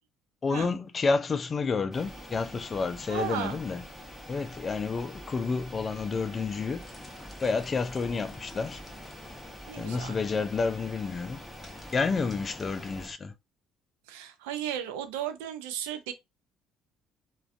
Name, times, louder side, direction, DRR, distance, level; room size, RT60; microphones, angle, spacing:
voice 1, 0.4-3.8 4.3-6.8 7.4-8.8 9.8-11.4 11.9-13.3, left 4 dB, 35° left, 0.3 m, -30 dB
sound 1, 1.9-13.1, equal, 5° right, 0.9 m, -46 dB
voice 2, 3.1-3.6 9.7-10.2 14.1-16.1, right 10 dB, 90° right, 0.4 m, -35 dB
sound 2, 6.8-13.1, left 2 dB, 20° left, 0.7 m, -51 dB
2.4 x 2.2 x 2.4 m
supercardioid pair, 75°, 0 cm